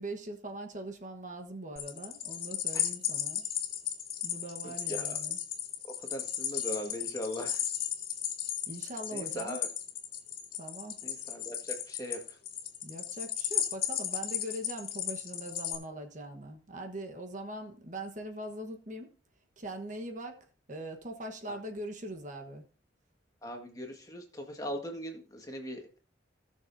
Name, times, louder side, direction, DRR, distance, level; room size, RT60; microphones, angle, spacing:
voice 1, 0.0-3.5 4.2-5.4 8.7-9.6 10.6-11.0 12.8-19.1 19.6-22.6, right 1 dB, 40° right, 4 dB, 1.3 m, -41 dB
sound 1, 1.8-15.8, left 10 dB, 50° left, 2.2 m, -35 dB
voice 2, 4.6-5.2 6.0-7.6 9.1-9.7 11.0-12.4 21.5-21.6 23.4-26.0, equal, 20° left, 2 dB, 1.8 m, -40 dB
18.0 x 6.7 x 2.7 m, 0.39 s
head